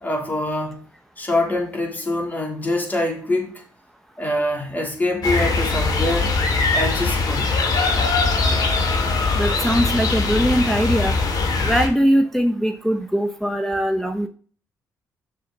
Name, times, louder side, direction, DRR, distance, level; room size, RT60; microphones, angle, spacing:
voice 1, 0.0-0.8 1.2-3.6 4.2-6.3 6.7-7.5, left 1 dB, 25° left, 3.2 m, -24 dB
sound 1, 5.2-11.9, left 3 dB, 65° left, 2.5 m, -21 dB
voice 2, 9.3-11.2 11.6-14.3, equal, 5° left, 0.9 m, -21 dB
7.6 x 6.6 x 4.0 m
cardioid pair, 85°, 7 cm